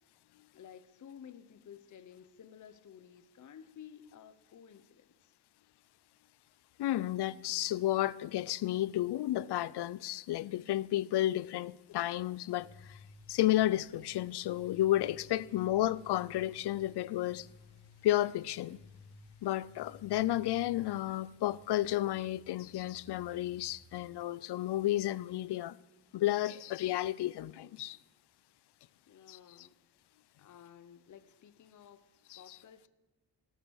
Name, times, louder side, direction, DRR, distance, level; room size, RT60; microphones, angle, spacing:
voice 1, 0.5-5.4 15.3-15.8 29.1-29.8 30.4-32.0 32.3-32.9, left 8 dB, 50° left, 0.7 m, -54 dB
voice 2, 6.8-13.0 13.3-17.5 18.0-18.8 19.4-25.8 26.1-28.0 29.3-29.4 32.3-32.4, left 14 dB, 85° left, 0.5 m, -32 dB
sound 1, 12.5-24.1, left 3 dB, 70° right, 3.7 m, -57 dB
18.0 x 6.7 x 6.3 m
wide cardioid pair, 150°, 39 cm